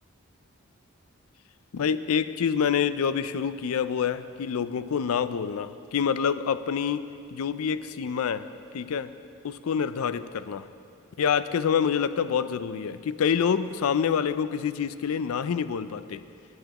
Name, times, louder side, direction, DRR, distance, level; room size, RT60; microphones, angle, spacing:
voice 1, 1.7-8.5 8.7-9.1 9.4-10.7 11.2-16.2, left 7 dB, 85° left, 13 dB, 0.4 m, -27 dB
18.0 x 9.1 x 3.0 m, 2.4 s
head